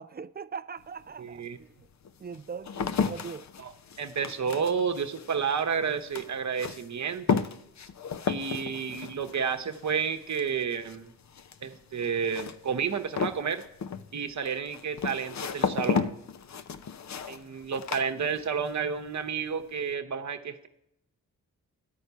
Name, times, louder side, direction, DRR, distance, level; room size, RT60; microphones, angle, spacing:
voice 1, 0.0-1.7 2.2-3.5, right 6 dB, 30° right, 0.4 m, -40 dB
sound 1, 0.8-0.9 1.6-18.8 19.1-19.6, left 6 dB, 50° left, 0.7 m, -34 dB
voice 2, 1.2-1.6 3.6-3.7 4.0-7.5 8.3-11.1 11.6-13.6 14.1-16.2 17.3-20.7, right 6 dB, 50° right, 1.0 m, -31 dB
11.5 x 4.4 x 8.1 m
supercardioid pair, 40°, 36 cm